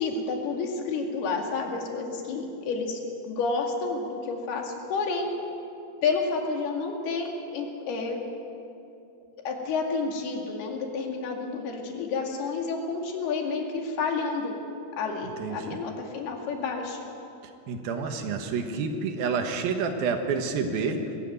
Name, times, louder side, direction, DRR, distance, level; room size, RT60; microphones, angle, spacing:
voice 1, 0.0-3.0 3.2-5.3 6.0-7.3 7.5-8.2 9.5-14.5 15.0-17.0, left 4 dB, 85° left, 2 dB, 4.2 m, -30 dB
voice 2, 15.4-15.8 17.7-21.0, right 5 dB, 75° right, 5 dB, 3.1 m, -29 dB
21.0 x 15.0 x 9.3 m, 2.7 s
omnidirectional pair, 4.4 m